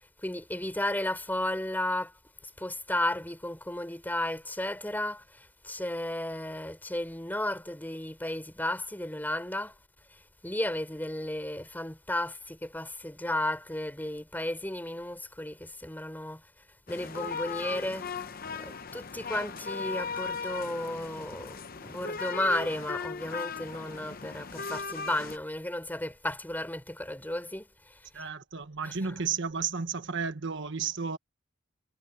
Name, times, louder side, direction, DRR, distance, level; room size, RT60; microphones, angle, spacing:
voice 1, 0.2-9.7 10.1-16.5 16.9-28.2 28.8-29.2, left 1 dB, 10° left, 3.8 m, -34 dB
sound 1, 16.9-25.4, left 5 dB, 45° left, 0.9 m, -38 dB
voice 2, 28.1-31.2, right 5 dB, 65° right, 1.3 m, -33 dB
head